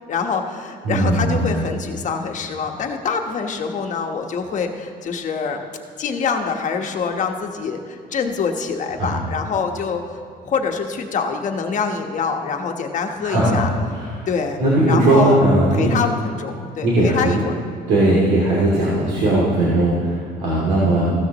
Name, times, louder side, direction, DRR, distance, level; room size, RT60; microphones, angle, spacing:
voice 1, 0.1-5.6 6.0-10.0 10.4-13.7 14.3-14.6 14.9-15.4 15.7-17.5, left 5 dB, 45° left, 4 dB, 1.2 m, -25 dB
voice 2, 0.8-1.5 9.0-9.2 13.2-13.7 13.9-14.3 14.6-15.9 16.8-17.4 17.9-21.0, right 1 dB, 80° right, -6 dB, 2.7 m, -18 dB
15.5 x 13.0 x 3.0 m, 2.3 s
cardioid pair, 110°, 17 cm